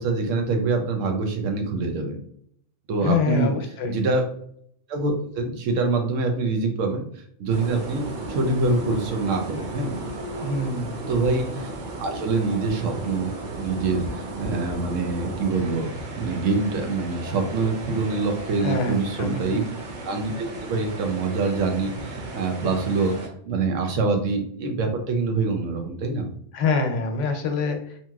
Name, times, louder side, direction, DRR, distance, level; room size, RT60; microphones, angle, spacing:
voice 1, 0.0-2.2 2.9-3.5 3.9-4.2 4.9-10.0 11.1-11.7 12.0-15.9 16.1-19.6 20.0-26.3, right 3 dB, 85° right, 4 dB, 1.0 m, -25 dB
voice 2, 3.0-4.0 10.4-11.0 18.6-19.5 26.5-28.0, left 4 dB, 80° left, 5 dB, 0.9 m, -25 dB
sound 1, 7.5-23.3, right 2 dB, 50° right, 0.6 m, -35 dB
2.9 x 2.7 x 2.3 m, 0.65 s
omnidirectional pair, 1.3 m